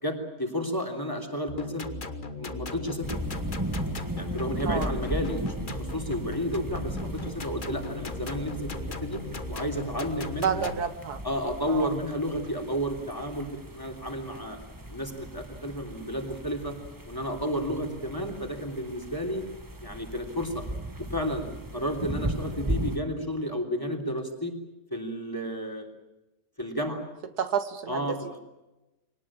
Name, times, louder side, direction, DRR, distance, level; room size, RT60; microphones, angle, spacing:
voice 1, 0.0-1.9 2.4-3.1 4.1-8.5 9.0-9.2 9.5-10.7 11.2-14.6 14.9-16.7 17.1-19.4 19.8-20.6 21.1-24.5 24.9-25.9 26.6-27.0 27.9-28.4, equal, 10° left, 4 dB, 3.3 m, -32 dB
sound 1, 1.5-10.8, left 2 dB, 30° left, 1.4 m, -38 dB
sound 2, 3.0-23.0, right 1 dB, 15° right, 1.2 m, -37 dB
voice 2, 10.4-11.2 11.7-11.9 27.4-28.2, right 7 dB, 70° right, 10 dB, 1.7 m, -29 dB
24.0 x 18.5 x 8.8 m, 1.0 s
omnidirectional pair, 1.8 m